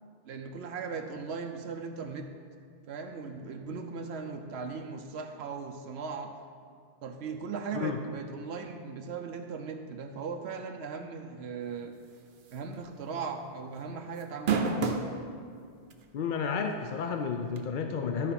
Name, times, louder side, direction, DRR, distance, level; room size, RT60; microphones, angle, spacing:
voice 1, 0.3-2.3 2.9-6.3 7.0-11.9 12.5-14.6, right 5 dB, 80° right, 5 dB, 0.9 m, -38 dB
sound 1, 12.5-12.7 13.1-13.2 14.2-15.1 15.9-16.0 17.6-17.7, right 5 dB, 60° right, 0.8 m, -27 dB
voice 2, 16.1-18.3, left 6 dB, 60° left, 5 dB, 0.6 m, -31 dB
12.0 x 4.6 x 5.8 m, 2.2 s
omnidirectional pair, 1.1 m